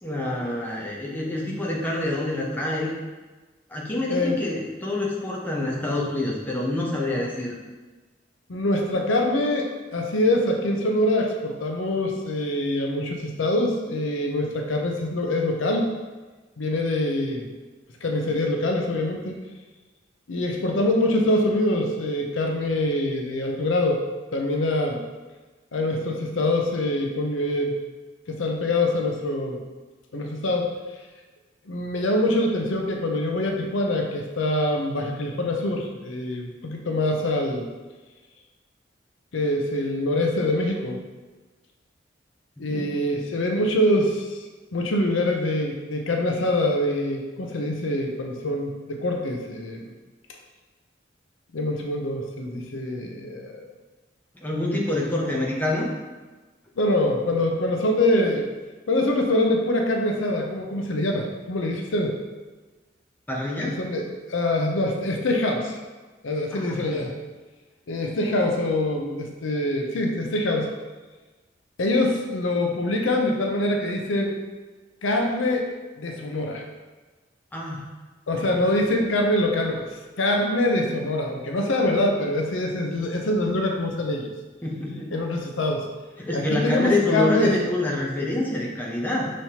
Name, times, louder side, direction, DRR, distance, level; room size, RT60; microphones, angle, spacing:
voice 1, 0.0-2.9 3.7-7.6 42.7-43.0 54.4-55.9 63.3-63.8 66.5-67.1 77.5-77.9 78.3-78.6 84.6-85.1 86.2-89.3, left 1 dB, 10° left, -3 dB, 0.6 m, -27 dB
voice 2, 4.1-4.4 7.1-7.2 8.5-15.9 16.6-17.5 18.0-19.4 20.3-24.0 24.3-25.0 25.7-27.7 28.3-29.6 30.1-30.7 31.7-37.7 39.3-41.0 42.6-44.4 44.7-49.9 51.5-53.6 56.8-58.5 58.9-62.2 63.6-65.8 66.2-67.1 67.9-70.7 71.8-74.4 75.0-75.7 76.0-76.6 78.3-79.9 80.2-84.3 85.1-85.9 86.3-87.7, left 1 dB, 85° left, 2 dB, 0.6 m, -24 dB
5.5 x 3.1 x 2.8 m, 1.3 s
head